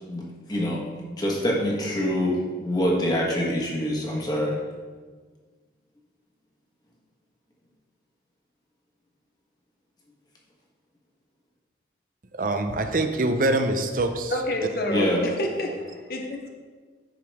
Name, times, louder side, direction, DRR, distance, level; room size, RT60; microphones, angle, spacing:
voice 1, 0.1-4.6 14.9-15.2, equal, 20° left, -2 dB, 1.3 m, -25 dB
voice 2, 12.3-14.3 15.0-15.1, right 2 dB, 45° right, 8 dB, 0.5 m, -24 dB
voice 3, 14.3-16.5, left 1 dB, 50° left, 2 dB, 0.7 m, -29 dB
10.5 x 4.9 x 3.5 m, 1.5 s
head